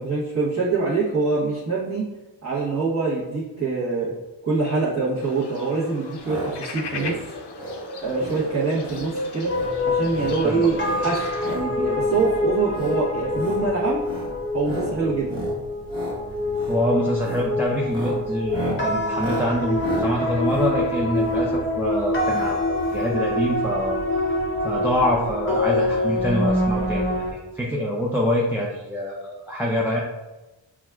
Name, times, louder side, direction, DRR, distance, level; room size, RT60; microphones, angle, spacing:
voice 1, 0.0-2.0 2.4-4.1 4.4-7.3 8.0-9.5 9.8-14.0 14.5-15.4, right 4 dB, 40° right, -10 dB, 1.1 m, -25 dB
sound 1, 5.2-11.6, left 1 dB, 65° left, 0.6 m, -33 dB
sound 2, 6.2-6.5 6.8-7.2 7.5-7.8 8.2-8.4 8.8-9.1 9.4-9.7 10.0-10.4 10.8-11.7 12.0-12.3 12.7-13.0 13.3-13.6 14.0-14.3 14.6-14.9 15.2-15.6 15.8-16.2 16.5-16.8 17.2-17.5 17.8-21.5 22.3-22.5 22.8-22.9 23.1-23.2, right 1 dB, 75° right, 1.5 m, -33 dB
sound 3, 9.5-27.3, left 2 dB, 25° left, 0.7 m, -25 dB
voice 2, 10.3-10.9 16.7-22.6 22.9-24.0 24.6-27.0 27.3-30.0, equal, 5° right, -4 dB, 0.4 m, -25 dB
5.9 x 2.4 x 2.3 m, 1.1 s
wide cardioid pair, 95°, 44 cm